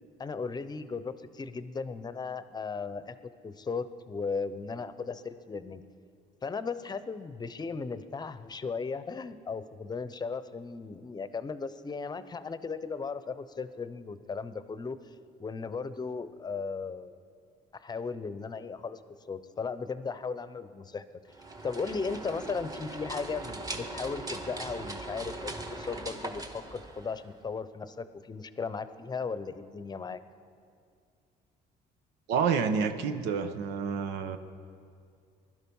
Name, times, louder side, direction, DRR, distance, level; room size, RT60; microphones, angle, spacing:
voice 1, 0.2-5.8 6.4-15.0 15.4-17.1 17.7-19.0 19.3-21.0 21.6-30.2, left 5 dB, 25° left, 13 dB, 0.7 m, -36 dB
sound 1, 21.3-27.5, right 2 dB, 20° right, 1.4 m, -40 dB
voice 2, 32.3-34.4, right 6 dB, 90° right, 8 dB, 1.0 m, -29 dB
20.5 x 12.0 x 5.5 m, 2.3 s
cardioid pair, 110°, 17 cm